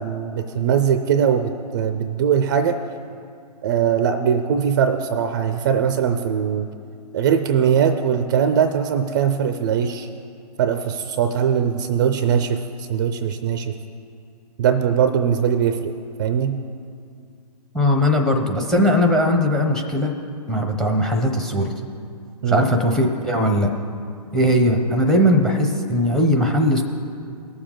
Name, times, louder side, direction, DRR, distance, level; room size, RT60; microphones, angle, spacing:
voice 1, 0.0-2.8 3.6-6.7 7.1-10.1 10.6-13.7 14.6-15.9 16.2-16.6 22.4-22.6, right 8 dB, 30° right, 9 dB, 0.4 m, -20 dB
voice 2, 17.7-20.1 20.5-21.7 22.5-23.7 24.3-26.8, equal, ahead, 4 dB, 0.7 m, -19 dB
19.0 x 7.0 x 3.7 m, 2.4 s
hypercardioid pair, 140°, 21 cm